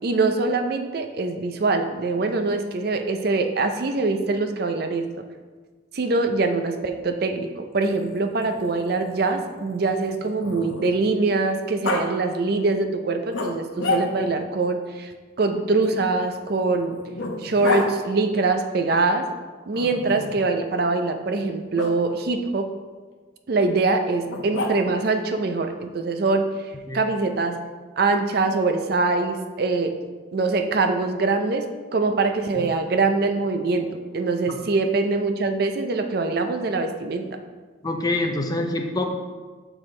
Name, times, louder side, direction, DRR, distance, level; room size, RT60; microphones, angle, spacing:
voice 1, 0.0-5.1 5.9-15.1 15.4-17.0 17.4-19.3 19.7-22.7 23.5-27.6 28.0-30.0 30.3-31.7 31.9-37.4, right 3 dB, 50° right, 6 dB, 0.5 m, -23 dB
Growling, 7.7-11.1 11.8-12.0 13.3-14.4 15.8-17.9 19.7-20.4 21.7-21.9 24.3-25.1, left 3 dB, 75° left, 0.8 m, -31 dB
voice 2, 37.8-39.1, left 2 dB, 20° left, 4 dB, 0.5 m, -25 dB
6.8 x 6.0 x 3.2 m, 1.4 s
head